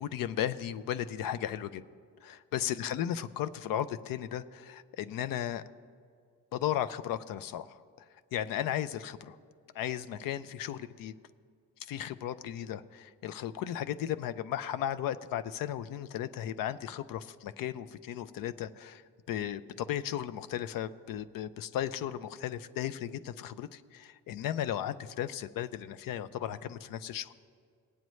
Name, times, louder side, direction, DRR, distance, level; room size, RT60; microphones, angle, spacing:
voice 1, 0.0-1.8 2.2-5.6 6.5-7.8 8.3-9.4 9.7-11.1 11.8-19.0 19.3-27.3, left 11 dB, 75° left, 13 dB, 0.5 m, -35 dB
19.0 x 9.1 x 3.1 m, 2.1 s
cardioid pair, 120°, 34 cm